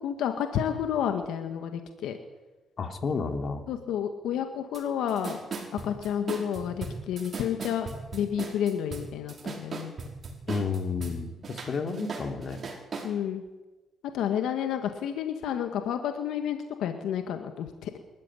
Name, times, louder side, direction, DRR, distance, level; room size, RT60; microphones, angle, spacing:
voice 1, 0.0-2.2 3.7-5.4 5.8-9.9 13.0-13.4 14.1-17.9, left 9 dB, 85° left, 6 dB, 1.8 m, -30 dB
voice 2, 2.8-3.6 10.5-12.6, left 4 dB, 50° left, 5 dB, 3.2 m, -31 dB
sound 1, 4.7-4.8 5.1-11.2 11.4-13.1, right 4 dB, 45° right, 5.4 m, -38 dB
24.5 x 14.5 x 9.9 m, 1.1 s
cardioid pair, 90°, 0 cm